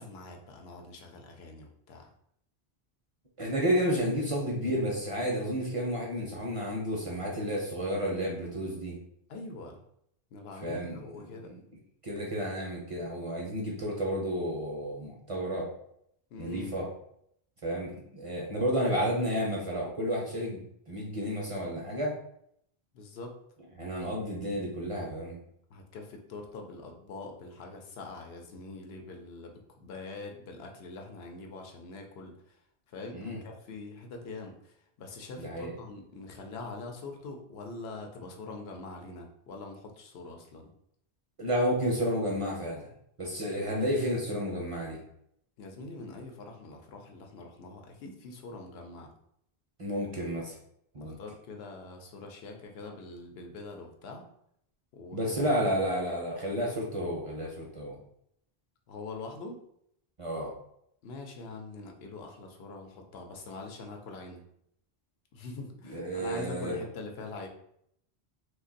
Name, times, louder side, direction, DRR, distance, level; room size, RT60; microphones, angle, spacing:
voice 1, 0.0-2.1 9.3-9.8 10.3-11.5 16.3-16.7 22.9-23.3 25.7-32.6 32.9-40.7 45.6-49.1 51.0-54.3 54.9-55.9 58.9-59.6 61.0-64.4 65.3-67.5, left 3 dB, 80° left, 2 dB, 0.8 m, -44 dB
voice 2, 3.4-9.0 10.6-11.0 11.4-11.6 12.0-15.7 16.4-16.9 17.6-22.2 23.8-25.4 33.1-33.4 35.4-35.7 41.4-42.9 43.2-45.0 49.8-50.5 50.9-51.2 55.1-58.0 60.2-60.5 65.9-66.8, equal, 40° right, -2 dB, 0.5 m, -31 dB
2.5 x 2.2 x 3.7 m, 0.72 s
omnidirectional pair, 1.1 m